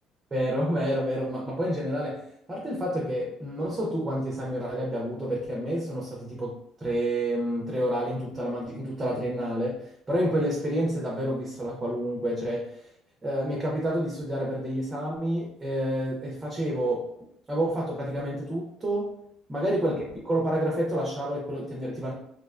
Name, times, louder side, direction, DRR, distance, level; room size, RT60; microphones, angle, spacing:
voice 1, 0.3-2.2 2.5-12.8 13.2-17.1 17.5-19.1 19.5-22.1, right 1 dB, 15° right, -3 dB, 0.4 m, -29 dB
2.6 x 2.1 x 2.4 m, 0.74 s
cardioid pair, 155°, 0 cm